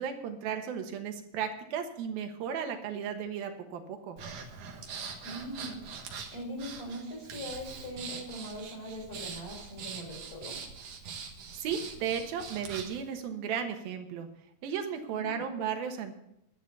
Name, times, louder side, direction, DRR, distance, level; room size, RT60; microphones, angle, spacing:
voice 1, 0.0-4.2 11.5-14.3 14.6-16.2, right 7 dB, 90° right, 5 dB, 3.2 m, -35 dB
Breathing, 4.2-13.0, right 5 dB, 55° right, 2.1 m, -43 dB
voice 2, 5.2-5.8 6.1-10.6 15.1-15.4, equal, 25° left, -1 dB, 5.5 m, -41 dB
11.5 x 10.5 x 6.8 m, 0.79 s
omnidirectional pair, 4.1 m